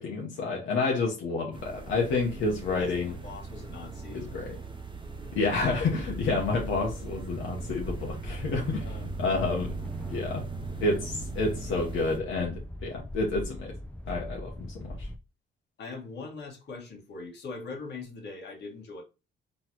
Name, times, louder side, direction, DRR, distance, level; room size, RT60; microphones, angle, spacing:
voice 1, 0.0-3.1 4.1-4.6 5.3-8.9 9.2-9.7 10.1-10.4 10.8-13.7 14.1-15.1, left 3 dB, 80° left, 1.1 m, -29 dB
sound 1, 1.5-12.2, right 4 dB, 25° right, 0.8 m, -40 dB
voice 2, 2.7-4.3 8.8-9.1 9.5-9.6 15.8-19.0, left 4 dB, 60° left, 1.7 m, -41 dB
sound 2, 5.5-15.2, left 1 dB, 5° left, 0.4 m, -40 dB
4.0 x 3.2 x 2.9 m
cardioid pair, 90°, 20 cm